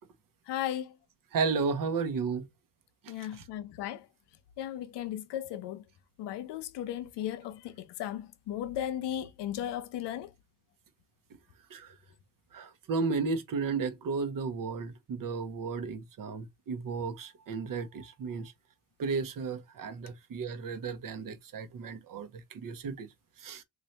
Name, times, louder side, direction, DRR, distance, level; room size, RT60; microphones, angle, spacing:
voice 1, 0.5-0.9 3.1-4.1 4.6-5.8 6.2-10.3, left 11 dB, 85° left, 0.7 m, -36 dB
voice 2, 1.3-2.5 3.0-3.5 11.7-11.9 12.5-18.5 19.0-23.1 23.4-23.6, right 4 dB, 55° right, 0.9 m, -34 dB
3.2 x 2.6 x 4.1 m
cardioid pair, 85°, 40 cm